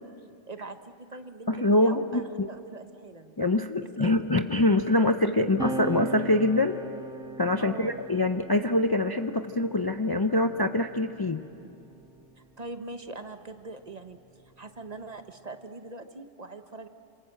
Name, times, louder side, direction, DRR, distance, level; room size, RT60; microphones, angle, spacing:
voice 1, 0.5-3.3 4.0-4.2 5.4-5.5 7.6-8.0 12.6-16.9, right 3 dB, 35° right, 8 dB, 1.0 m, -42 dB
voice 2, 1.5-2.5 3.4-6.8 7.4-11.5, left 2 dB, 25° left, 7 dB, 0.6 m, -24 dB
sound 1, 5.6-12.5 13.5-15.3, right 2 dB, 5° right, 1.4 m, -41 dB
27.5 x 27.0 x 7.8 m, 2.6 s
omnidirectional pair, 1.2 m